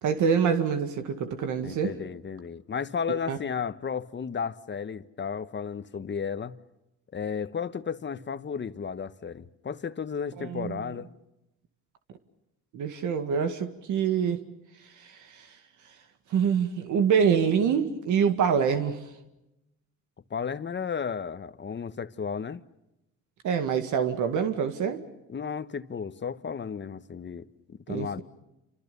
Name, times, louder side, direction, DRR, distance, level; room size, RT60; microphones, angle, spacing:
voice 1, 0.0-2.0 3.1-3.4 10.4-10.7 12.7-14.4 15.0-15.5 16.3-19.0 23.4-25.0 27.9-28.2, right 7 dB, 80° right, 2.1 m, -26 dB
voice 2, 1.6-6.6 7.1-11.1 20.3-22.6 25.3-28.2, left 6 dB, 35° left, 1.3 m, -33 dB
28.5 x 26.5 x 7.0 m
cardioid pair, 90°, 30 cm